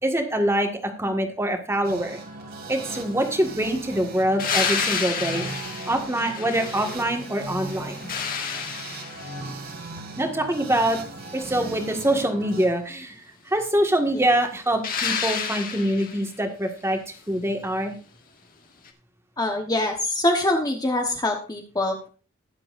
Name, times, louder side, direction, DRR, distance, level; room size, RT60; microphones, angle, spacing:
voice 1, 0.0-2.2 2.7-5.6 5.8-8.1 10.2-11.0 11.3-13.2 13.5-17.0 17.3-17.9, right 1 dB, 10° right, 4 dB, 1.7 m, -24 dB
sound 1, 1.8-12.7, right 2 dB, 45° right, 2.3 m, -38 dB
sound 2, 4.4-7.3 7.7-9.5 14.8-16.3 18.9-19.0, left 6 dB, 40° left, 1.8 m, -29 dB
voice 2, 19.4-22.1, left 1 dB, 15° left, 3 dB, 1.1 m, -24 dB
21.0 x 7.6 x 2.6 m, 0.38 s
head